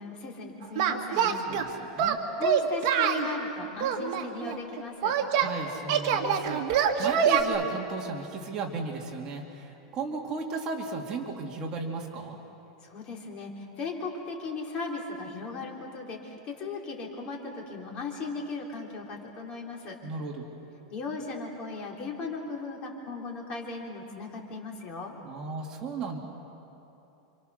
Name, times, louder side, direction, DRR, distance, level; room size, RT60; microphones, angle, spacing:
voice 1, 0.0-1.4 2.3-5.1 12.8-20.0 20.9-25.2, left 4 dB, 30° left, 0 dB, 3.6 m, -37 dB
Singing, 0.8-1.7 2.0-3.3 3.8-5.5 5.9-7.4, right 8 dB, 50° right, 2.0 m, -25 dB
voice 2, 1.3-2.2 5.4-12.4 20.0-20.5 25.2-26.2, right 3 dB, 25° right, 0 dB, 2.4 m, -35 dB
29.0 x 26.0 x 6.6 m, 2.9 s
supercardioid pair, 160°, 3 cm